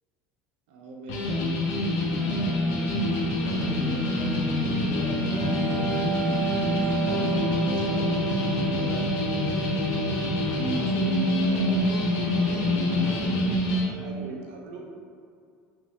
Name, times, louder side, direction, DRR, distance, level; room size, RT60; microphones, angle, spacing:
voice 1, 0.7-2.8 3.4-9.2 9.8-14.9, equal, 90° right, -1 dB, 0.4 m, -38 dB
sound 1, 1.1-13.8, left 2 dB, 75° left, 0.4 m, -26 dB
Bowed string instrument, 1.9-7.9, right 1 dB, 20° left, 0.5 m, -35 dB
Wind instrument woodwind instrument, 5.3-13.4, right 4 dB, 45° left, 1.1 m, -31 dB
3.0 x 2.0 x 2.8 m, 2.3 s
supercardioid pair, 115°, 5 cm